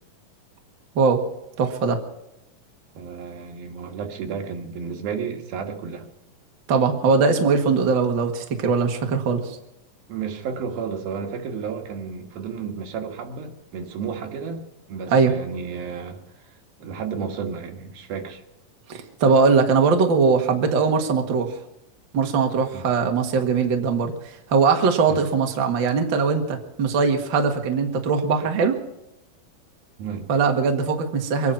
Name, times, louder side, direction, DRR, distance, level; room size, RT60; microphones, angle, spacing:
voice 1, 1.6-2.0 6.7-9.6 15.1-15.3 18.9-21.6 22.1-24.1 24.5-28.8 30.3-31.5, right 5 dB, 45° right, 3 dB, 1.8 m, -20 dB
voice 2, 2.9-6.1 10.1-16.2 16.8-18.4 22.7-22.9 25.1-25.2 30.0-30.3, right 6 dB, 75° right, 3 dB, 3.4 m, -32 dB
24.5 x 9.7 x 5.8 m, 0.89 s
omnidirectional pair, 4.3 m